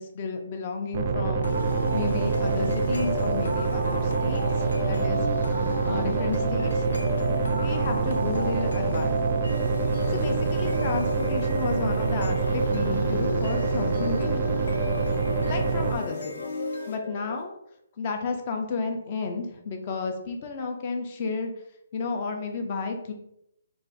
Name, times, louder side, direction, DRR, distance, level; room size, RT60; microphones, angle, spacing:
voice 1, 0.0-1.5 1.9-5.2 5.8-6.8 7.6-9.3 10.1-14.4 15.4-16.5 16.9-17.5 18.0-21.5 21.9-23.1, left 4 dB, 35° left, 4 dB, 0.5 m, -32 dB
sound 1, 0.9-16.0, right 4 dB, 40° right, 0.3 m, -26 dB
sound 2, 1.4-17.4, left 1 dB, 85° left, 0.7 m, -34 dB
2.4 x 2.4 x 3.8 m, 0.79 s
hypercardioid pair, 160°, 0 cm